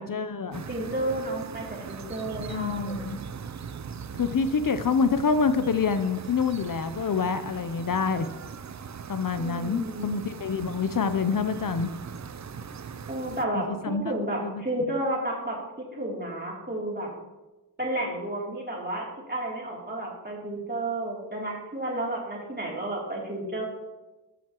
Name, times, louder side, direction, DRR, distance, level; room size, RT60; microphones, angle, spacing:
voice 1, 0.0-0.6 2.5-3.2 4.1-8.3 9.1-11.9 13.5-14.0 14.4-14.6, left 5 dB, 55° left, 10 dB, 0.6 m, -27 dB
sound 1, 0.5-13.5, right 6 dB, 45° right, 0.5 m, -40 dB
voice 2, 0.7-3.1 9.4-10.2 13.1-17.1 17.8-23.6, right 1 dB, 25° right, -3 dB, 3.0 m, -32 dB
13.5 x 9.3 x 3.0 m, 1.1 s
wide cardioid pair, 75°, 39 cm